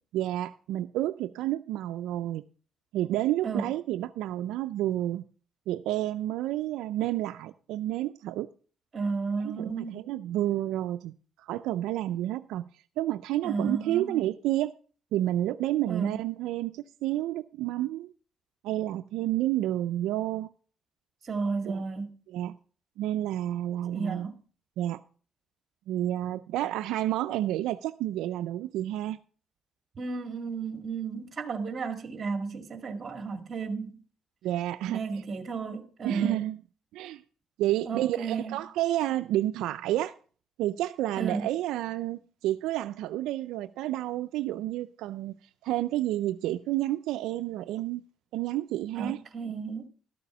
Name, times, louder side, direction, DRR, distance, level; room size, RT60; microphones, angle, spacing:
voice 1, 0.1-2.4 2.9-5.2 5.7-8.5 9.4-11.1 11.4-12.7 13.0-14.7 15.1-18.1 18.6-20.5 21.7-21.8 22.3-22.6 23.0-24.3 24.8-25.0 25.9-29.2 34.4-35.0 36.0-36.6 36.9-37.2 37.6-40.1 40.6-48.0 48.3-49.2, right 14 dB, 85° right, 0.4 m, -30 dB
voice 2, 8.9-10.0 13.4-14.2 15.9-16.2 21.2-22.1 23.9-24.4 30.0-34.0 34.9-36.5 37.9-38.6 41.2-41.5 49.0-49.9, right 4 dB, 35° right, 2.0 m, -33 dB
13.0 x 6.9 x 6.0 m
cardioid pair, 110°, 0 cm